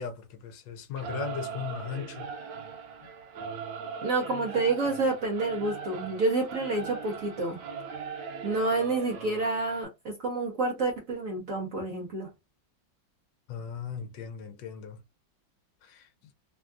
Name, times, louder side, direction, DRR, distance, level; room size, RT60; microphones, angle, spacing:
voice 1, 0.0-2.3 13.5-15.0 15.8-16.1, left 7 dB, 75° left, 1.2 m, -37 dB
Singing / Musical instrument, 1.0-9.9, right 5 dB, 80° right, 1.3 m, -40 dB
voice 2, 4.0-7.6 8.4-12.3, right 3 dB, 65° right, 0.8 m, -29 dB
3.4 x 2.3 x 2.4 m
omnidirectional pair, 2.1 m